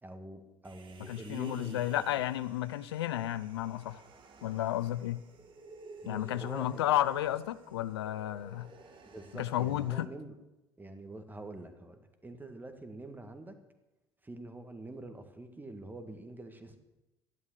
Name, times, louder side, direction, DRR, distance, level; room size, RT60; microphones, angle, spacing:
voice 1, 0.0-2.0 6.0-6.8 9.1-10.4 10.8-13.5 14.2-16.8, right 2 dB, 15° right, 1.9 m, -45 dB
Human voice, 0.6-10.0, right 3 dB, 40° right, 1.7 m, -55 dB
voice 2, 1.0-4.0 4.4-5.2 6.0-8.7 9.4-10.1, left 13 dB, 75° left, 0.5 m, -32 dB
13.0 x 11.0 x 6.6 m
figure-of-eight pair, 65°, 13 cm